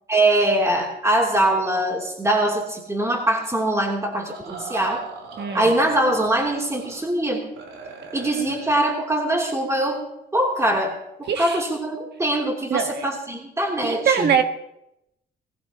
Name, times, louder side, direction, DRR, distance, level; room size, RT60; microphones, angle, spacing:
voice 1, 0.1-5.0 5.5-7.4 8.1-10.0 10.3-14.3, right 1 dB, 15° right, -1 dB, 3.2 m, -22 dB
sound 1, 4.1-7.1 7.4-8.8, right 4 dB, 90° right, 4.0 m, -39 dB
voice 2, 5.4-5.7 11.3-11.6 12.7-13.1 13.8-14.4, right 7 dB, 60° right, 6 dB, 1.7 m, -22 dB
21.5 x 15.5 x 3.0 m, 0.83 s
cardioid pair, 90°, 20 cm